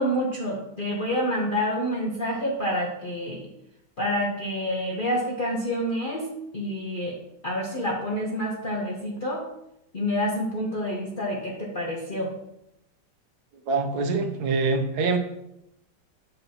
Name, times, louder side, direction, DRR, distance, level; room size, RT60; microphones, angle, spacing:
voice 1, 0.0-3.4 4.0-6.3 6.5-7.1 7.4-9.4 9.9-12.3, equal, 45° left, -2 dB, 0.6 m, -28 dB
voice 2, 13.7-15.2, right 4 dB, 70° right, 5 dB, 1.1 m, -24 dB
7.0 x 5.4 x 2.8 m, 0.83 s
omnidirectional pair, 1.9 m